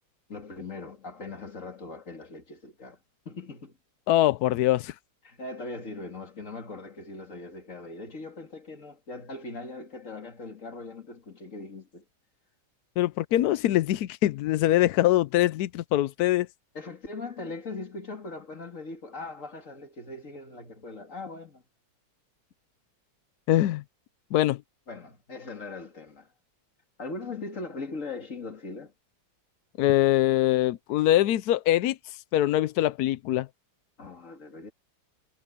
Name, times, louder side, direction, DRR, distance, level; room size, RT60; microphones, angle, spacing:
voice 1, 0.3-3.0 3.3-3.8 5.2-12.0 16.7-21.6 24.9-26.3 27.0-28.9 34.0-34.7, left 3 dB, 40° left, 2.7 m, -40 dB
voice 2, 4.1-4.9 13.0-16.5 23.5-23.8 24.3-24.6 29.8-33.5, left 14 dB, 75° left, 0.9 m, -23 dB
omnidirectional pair, 2.1 m